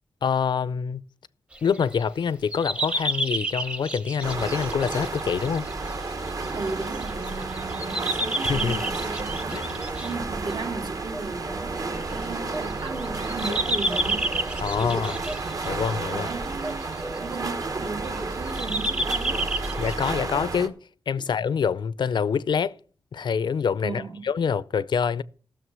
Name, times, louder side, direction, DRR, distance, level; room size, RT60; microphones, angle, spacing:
voice 1, 0.2-1.0 1.6-5.7 8.5-8.8 9.5-9.6 13.5-13.6 14.6-15.1 15.6-16.3 19.8-20.8 21.1-22.8 23.1-25.2, left 6 dB, 75° left, 0.4 m, -26 dB
sound 1, 1.5-2.0 2.5-20.5, right 1 dB, 15° right, 0.7 m, -32 dB
sound 2, 4.2-20.7, right 3 dB, 50° right, 1.0 m, -32 dB
voice 2, 6.5-14.3 14.8-15.2 16.1-19.8 21.2-21.3 23.8-24.3, right 3 dB, 75° right, 2.7 m, -36 dB
14.5 x 6.6 x 6.1 m
wide cardioid pair, 145°, 8 cm